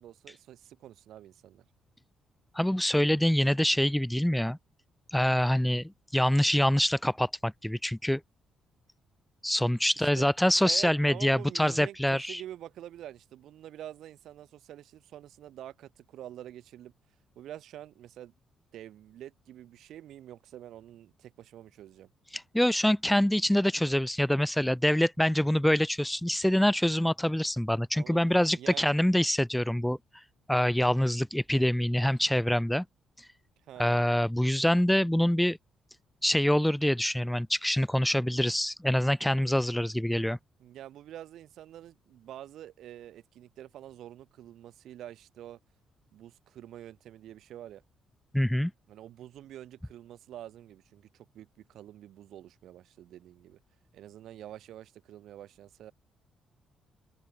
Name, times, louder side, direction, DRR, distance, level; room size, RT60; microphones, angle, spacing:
voice 1, 0.0-1.6 10.0-10.3 10.6-16.9 17.3-18.3 18.7-22.1 27.9-28.2 28.6-28.9 33.7-34.0 40.6-45.6 46.1-47.8 48.9-53.6 53.9-55.9, right 12 dB, 75° right, 4.5 m, -46 dB
voice 2, 2.5-4.6 5.1-8.2 9.4-12.4 22.3-30.0 30.5-32.8 33.2-33.3 33.8-35.6 36.2-40.4 48.3-48.7, equal, 5° left, 1.0 m, -25 dB
open air
cardioid pair, 90°, 0 cm